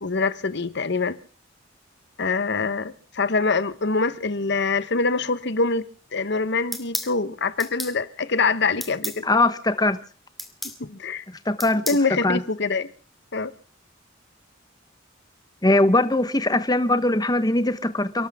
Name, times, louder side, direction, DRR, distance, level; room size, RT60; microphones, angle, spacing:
voice 1, 0.0-1.2 2.2-5.8 6.1-9.3 10.8-11.2 11.9-12.9 13.3-13.5, left 4 dB, 60° left, 1.0 m, -24 dB
sound 1, 6.7-7.1 7.6-8.0 8.8-9.2 10.4-10.8 11.6-12.1, equal, ahead, 2.2 m, -31 dB
voice 2, 9.2-10.0 11.5-11.8 12.2-12.4 15.6-18.3, left 2 dB, 20° left, 1.0 m, -21 dB
29.5 x 12.0 x 3.6 m
head